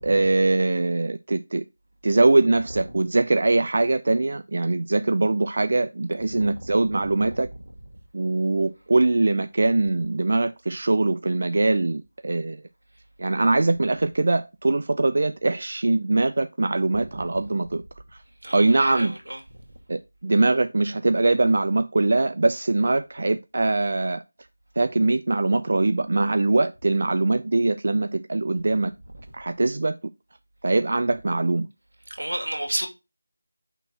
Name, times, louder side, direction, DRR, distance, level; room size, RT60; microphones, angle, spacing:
voice 1, 0.0-1.6 2.0-7.5 8.1-12.6 13.2-17.8 18.5-19.2 19.9-24.2 24.8-28.9 29.3-30.0 30.6-31.7, right 2 dB, 50° right, 0.3 m, -22 dB
voice 2, 6.4-7.4 7.6-7.7 17.4-17.5 18.4-19.4 32.2-32.9, right 1 dB, 85° right, 2.2 m, -33 dB
6.0 x 4.0 x 3.9 m
figure-of-eight pair, 170°, 0 cm